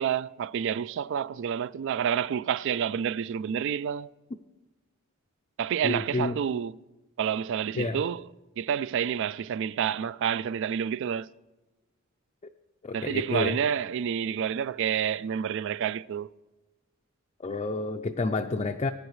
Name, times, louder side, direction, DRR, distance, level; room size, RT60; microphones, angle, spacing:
voice 1, 0.0-4.1 5.6-6.8 7.2-8.3 8.6-11.3 12.9-16.3, right 8 dB, 60° right, 0.3 m, -29 dB
voice 2, 5.8-6.4 7.8-8.0 12.8-13.6 17.4-18.9, left 3 dB, 30° left, 0.4 m, -29 dB
20.5 x 9.8 x 3.1 m
head